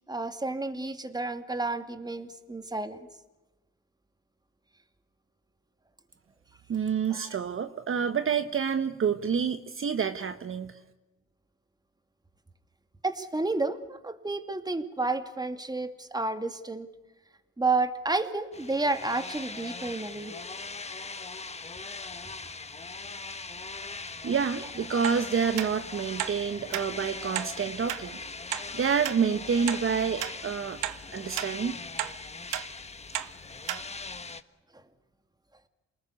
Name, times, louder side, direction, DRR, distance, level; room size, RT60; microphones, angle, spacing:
voice 1, 0.1-3.0 7.1-7.4 13.0-16.9 17.6-20.4, right 3 dB, 15° right, 2.3 m, -31 dB
voice 2, 6.7-10.8 24.2-28.2 28.7-30.8 31.1-31.8, right 6 dB, 45° right, 1.3 m, -28 dB
sound 1, 18.5-34.4, left 4 dB, 20° left, 1.4 m, -40 dB
sound 2, 25.0-25.2 25.6-25.7 26.2-26.4 26.7-26.9 27.3-27.5 27.9-28.0 28.5-28.6 29.0-29.2 29.7-29.8 30.2-30.4 30.8-31.0 31.4-31.5 32.0-32.1 32.5-32.7 33.1-33.3 33.7-33.8 34.3-34.4, right 13 dB, 90° right, 1.4 m, -32 dB
28.5 x 20.0 x 8.4 m
cardioid pair, 90°, 30 cm